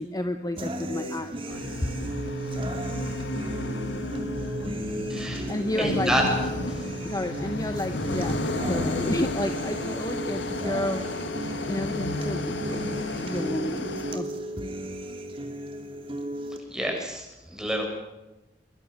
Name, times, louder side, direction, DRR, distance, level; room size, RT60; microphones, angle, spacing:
voice 1, 0.0-1.9 5.5-6.1 7.0-14.3, left 1 dB, 20° left, 8 dB, 1.1 m, -32 dB
sound 1, 0.6-16.6, equal, 30° right, 3.0 m, -35 dB
sound 2, 1.5-14.2, left 1 dB, 90° left, 1.9 m, -32 dB
voice 2, 5.1-5.5 5.7-6.2 6.7-6.8 16.7-17.9, equal, 5° right, 1 dB, 7.2 m, -28 dB
23.5 x 23.5 x 6.6 m, 1.0 s
head